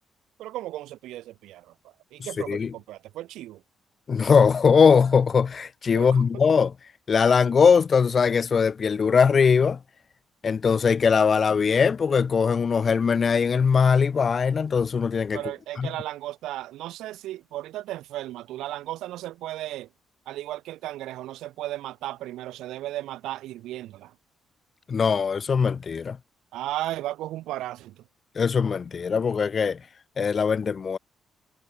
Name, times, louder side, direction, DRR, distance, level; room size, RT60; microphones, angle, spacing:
voice 1, 0.4-3.6 5.9-6.2 15.3-19.9 20.3-24.1 26.5-28.0, right 15 dB, 90° right, 2.8 m, -35 dB
voice 2, 4.1-6.7 7.1-9.8 10.4-15.4 15.8-15.9 24.9-26.2 28.4-29.8 30.2-31.0, left 6 dB, 45° left, 0.7 m, -21 dB
cardioid pair, 90°, 0 cm